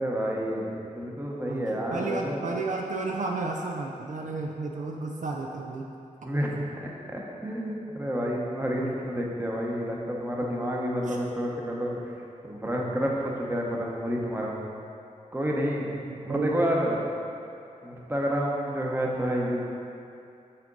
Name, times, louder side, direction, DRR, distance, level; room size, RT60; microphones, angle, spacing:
voice 1, 0.0-2.5 6.2-12.2 12.4-14.6 15.3-15.9 16.2-17.0 17.8-19.6, equal, 15° right, -2 dB, 0.9 m, -29 dB
voice 2, 1.9-5.8 11.1-11.2 16.1-16.5, right 3 dB, 65° right, 0 dB, 0.5 m, -32 dB
6.7 x 3.6 x 3.9 m, 2.6 s
cardioid pair, 60°, 14 cm